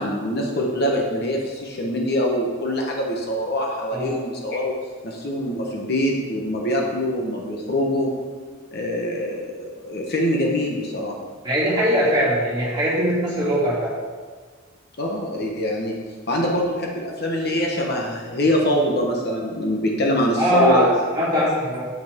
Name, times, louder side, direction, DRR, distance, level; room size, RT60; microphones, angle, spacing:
voice 1, 0.0-4.8 5.0-8.1 8.7-11.1 15.0-16.0 16.3-20.9 21.3-21.5, left 1 dB, 50° left, -1 dB, 1.1 m, -24 dB
voice 2, 11.4-13.9 20.4-21.8, equal, 20° right, -9 dB, 2.9 m, -21 dB
8.5 x 8.0 x 3.7 m, 1.5 s
head